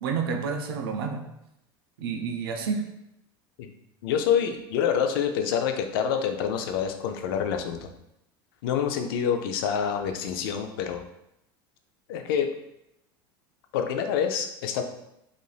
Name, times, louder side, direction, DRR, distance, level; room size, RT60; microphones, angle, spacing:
voice 1, 0.0-1.3 2.0-2.8, right 5 dB, 85° right, 5 dB, 0.4 m, -29 dB
voice 2, 4.0-7.9 8.6-11.0 12.1-12.5 13.7-14.8, left 8 dB, 80° left, 6 dB, 0.4 m, -27 dB
3.2 x 2.4 x 2.3 m, 0.83 s
supercardioid pair, 105°, 12 cm